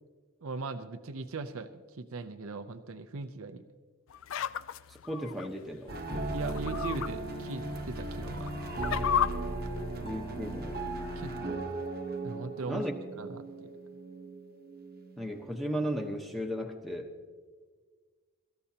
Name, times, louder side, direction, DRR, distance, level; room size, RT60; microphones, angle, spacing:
voice 1, 0.4-3.6 6.3-8.5 11.2-11.6 12.2-12.9 13.2-13.7, right 3 dB, 80° right, 9 dB, 0.6 m, -39 dB
sound 1, 4.1-5.5 6.4-7.1 7.5-7.6 8.3-9.3, left 9 dB, 70° left, 0.4 m, -32 dB
voice 2, 4.9-5.9 10.0-10.8 12.7-12.9 15.2-17.1, equal, ahead, 2 dB, 1.0 m, -35 dB
sound 2, 5.9-16.3, right 2 dB, 45° right, 0.9 m, -38 dB
Bowed string instrument, 6.1-11.8, equal, 30° left, 3.7 m, -43 dB
24.0 x 13.5 x 2.9 m, 1.5 s
head